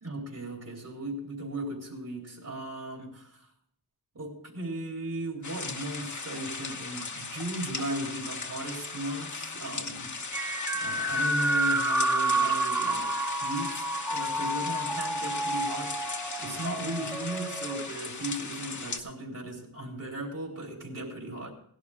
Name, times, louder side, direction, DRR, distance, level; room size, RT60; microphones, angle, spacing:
voice 1, 0.0-3.5 4.2-21.5, right 1 dB, 65° right, 3.5 m, -37 dB
sound 1, 5.4-19.0, left 4 dB, 55° left, 1.1 m, -38 dB
sound 2, 10.3-17.9, right 1 dB, 5° right, 0.9 m, -29 dB
17.0 x 11.5 x 3.6 m
wide cardioid pair, 60°, 35 cm